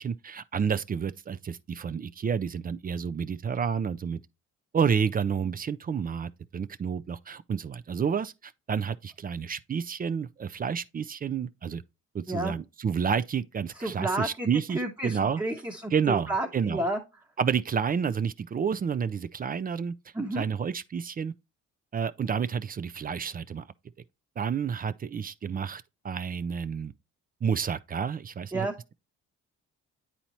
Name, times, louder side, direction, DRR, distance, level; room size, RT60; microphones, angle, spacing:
voice 1, 0.0-4.2 4.7-11.8 12.1-15.4 15.9-16.9 17.4-19.9 20.3-21.3 21.9-23.6 24.4-26.9 27.4-28.7, right 7 dB, 30° right, 0.4 m, -30 dB
voice 2, 13.8-17.0 20.1-20.4 28.5-28.8, right 1 dB, 15° right, 1.1 m, -31 dB
8.8 x 4.2 x 2.9 m
cardioid pair, 90°, 30 cm